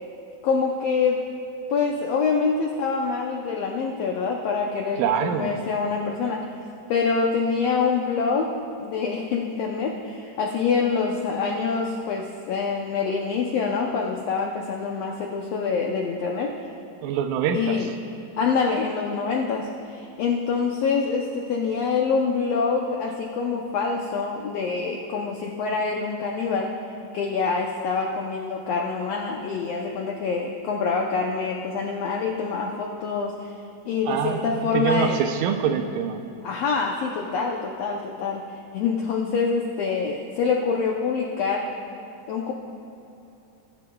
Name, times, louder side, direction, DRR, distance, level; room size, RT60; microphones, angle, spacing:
voice 1, 0.4-1.2 1.7-6.4 6.9-8.5 8.8-16.5 17.5-17.9 18.4-26.7 27.1-33.5 33.8-35.2 36.4-38.4 38.7-41.7 42.3-42.5, left 5 dB, 85° left, 0 dB, 1.4 m, -25 dB
voice 2, 5.0-5.6 17.0-17.8 34.1-36.2, right 8 dB, 85° right, 6 dB, 2.3 m, -25 dB
21.0 x 11.5 x 2.3 m, 2.8 s
omnidirectional pair, 3.9 m